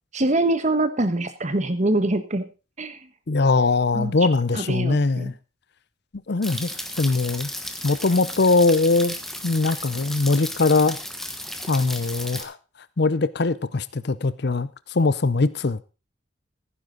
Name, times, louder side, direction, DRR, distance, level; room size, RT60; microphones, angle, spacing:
voice 1, 0.1-2.5 2.8-3.1 3.9-4.1 4.5-5.3, right 2 dB, 35° right, 1.3 m, -24 dB
voice 2, 3.3-5.3 6.3-6.7 7.0-7.5 7.8-9.2 9.4-11.0 11.7-12.6 13.0-15.8, left 3 dB, 55° left, 0.6 m, -21 dB
sound 1, 6.4-12.4, left 1 dB, ahead, 1.2 m, -34 dB
15.5 x 9.9 x 3.9 m
head